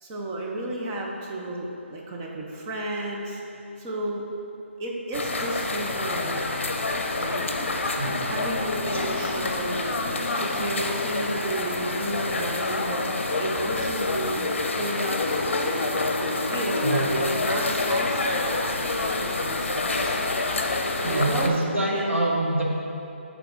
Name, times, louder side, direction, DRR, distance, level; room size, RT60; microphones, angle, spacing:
voice 1, 0.0-3.4 3.8-4.3 4.8-6.5 7.2-7.4 8.2-13.1 13.4-14.4 14.8-15.2 15.9-18.6 19.0-20.2 20.9-21.5 21.9-22.3, right 1 dB, 15° right, -2 dB, 0.4 m, -32 dB
sound 1, 5.1-21.5, left 3 dB, 70° left, 0.6 m, -27 dB
voice 2, 8.0-8.9 16.8-17.1 21.0-22.6, right 2 dB, 85° right, -2 dB, 1.1 m, -26 dB
8.9 x 3.4 x 3.7 m, 2.8 s
hypercardioid pair, 165°, 7 cm